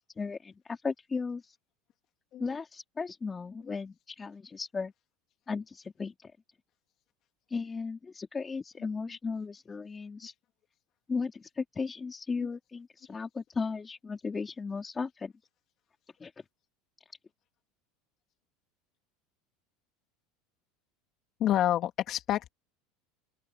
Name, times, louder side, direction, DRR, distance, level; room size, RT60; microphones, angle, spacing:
voice 1, 0.0-1.4 2.4-4.9 5.5-6.3 7.5-10.3 11.1-15.3 16.2-16.3, left 4 dB, 15° left, 4.4 m, -36 dB
voice 2, 21.4-22.5, left 12 dB, 45° left, 3.2 m, -28 dB
open air
supercardioid pair, 130°, 0 cm